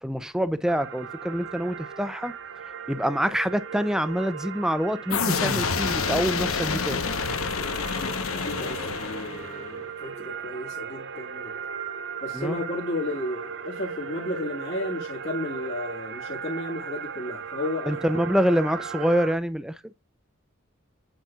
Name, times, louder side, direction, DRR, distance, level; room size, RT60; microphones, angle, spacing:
voice 1, 0.0-2.3 2.9-7.0 12.3-12.6 17.9-19.8, equal, 5° right, 0.5 m, -26 dB
sound 1, 0.7-19.3, right 6 dB, 55° right, 0.7 m, -37 dB
sound 2, 5.1-9.8, left 5 dB, 85° left, 1.1 m, -28 dB
voice 2, 7.9-11.5 12.2-18.2, left 1 dB, 55° left, 1.9 m, -33 dB
9.1 x 5.8 x 2.4 m
head